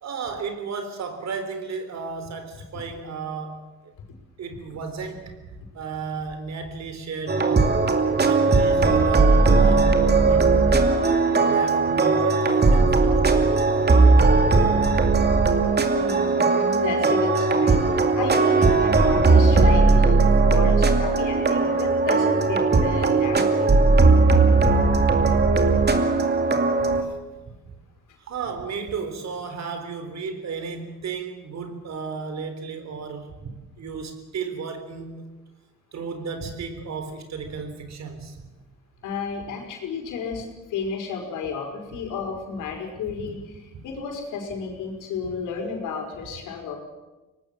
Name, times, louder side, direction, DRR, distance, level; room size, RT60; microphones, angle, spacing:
voice 1, 0.0-3.9 4.4-5.5 5.7-7.8 8.2-10.5 11.4-14.6 18.9-19.0 24.1-24.3 24.6-24.9 25.2-25.3 25.6-26.0 26.8-27.2 27.5-27.8 28.2-33.5 33.8-35.3 35.9-38.4 43.2-43.3 43.7-43.8 45.2-45.3, right 5 dB, 60° right, 8 dB, 3.9 m, -34 dB
sound 1, 7.3-27.0, right 3 dB, 35° right, 2.5 m, -18 dB
voice 2, 15.9-17.8 18.1-23.7 39.0-46.8, left 5 dB, 85° left, 2 dB, 5.3 m, -32 dB
23.5 x 19.0 x 7.6 m, 1.1 s
cardioid pair, 90°, 30 cm